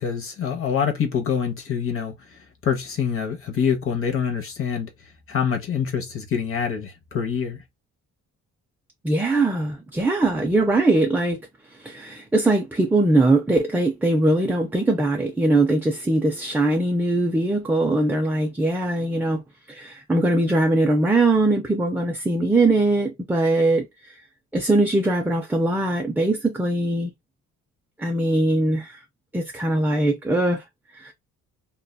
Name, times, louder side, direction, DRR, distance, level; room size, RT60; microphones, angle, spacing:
voice 1, 0.0-2.1 2.6-4.9 5.3-7.6, left 7 dB, 50° left, 0.7 m, -25 dB
voice 2, 9.0-11.4 11.8-19.4 19.7-23.9 24.5-27.1 28.0-29.0 29.3-30.6 30.9-31.1, right 2 dB, 5° right, 0.4 m, -21 dB
2.7 x 2.2 x 2.2 m
cardioid pair, 95°, 29 cm